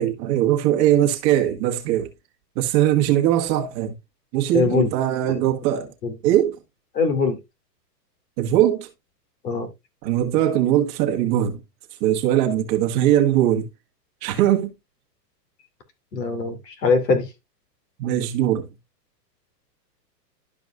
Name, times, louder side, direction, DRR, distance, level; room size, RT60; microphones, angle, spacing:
voice 1, 0.0-2.1 2.5-3.9 4.3-5.9 6.2-6.6 8.4-8.9 10.0-11.6 12.0-13.7 14.2-14.7 18.0-18.7, right 12 dB, 30° right, 1.4 m, -20 dB
voice 2, 4.5-4.9 5.3-5.5 6.0-6.1 6.9-7.4 9.4-9.7 16.1-17.3, left 4 dB, 75° left, 2.7 m, -22 dB
12.0 x 5.1 x 2.4 m
hypercardioid pair, 135°, 50 cm